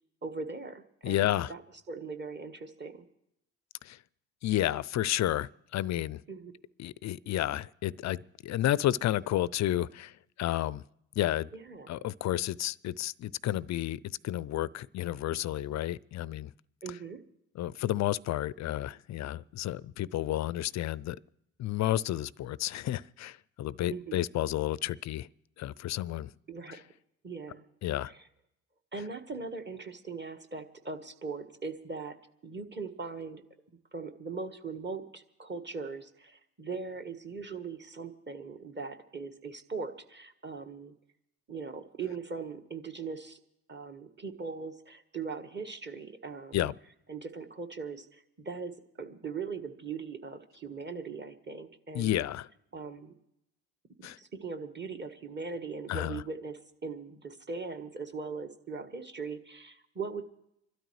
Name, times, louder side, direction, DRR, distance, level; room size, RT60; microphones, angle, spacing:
voice 1, 0.2-1.6 1.9-2.9 6.3-6.5 11.5-12.0 16.8-17.2 23.9-24.2 26.5-26.8 27.2-27.6 28.1-28.2 28.9-32.2 32.4-33.4 33.9-40.9 41.5-43.4 43.7-46.7 47.1-52.2 52.7-53.1 54.0-60.2, right 4 dB, 25° right, 1.4 m, -40 dB
voice 2, 1.0-1.5 3.8-4.0 4.4-6.2 6.8-10.1 10.4-10.8 11.2-11.5 11.9-16.5 17.6-21.2 21.6-25.3 25.6-26.3 26.7-26.8 27.8-28.1 46.5-46.7 51.9-52.5 54.0-54.2 55.9-56.2, left 13 dB, 40° left, 0.5 m, -31 dB
28.0 x 12.5 x 3.2 m
hypercardioid pair, 50°, 44 cm